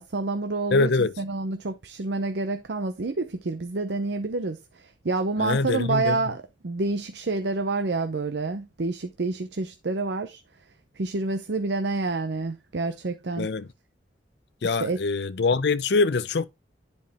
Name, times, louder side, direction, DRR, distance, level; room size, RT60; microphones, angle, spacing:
voice 1, 0.0-10.4 11.0-13.5 14.6-15.0, right 3 dB, 70° right, 0.7 m, -28 dB
voice 2, 0.7-1.1 5.4-6.2 13.4-13.7 14.6-16.5, left 3 dB, 65° left, 0.6 m, -24 dB
10.5 x 4.5 x 3.4 m
head